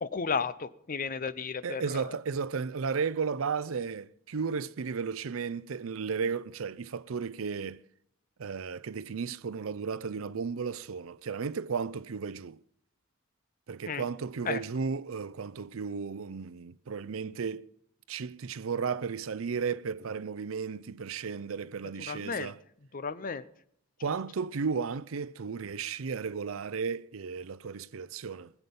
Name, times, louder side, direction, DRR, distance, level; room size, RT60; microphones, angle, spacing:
voice 1, 0.0-1.8 13.9-14.0 14.5-14.6 22.1-22.5 22.9-23.4, left 5 dB, 40° left, 0.7 m, -33 dB
voice 2, 1.6-7.8 8.4-12.6 13.7-17.7 18.1-22.6 24.0-28.5, right 5 dB, 75° right, 0.5 m, -34 dB
18.5 x 8.1 x 5.4 m
head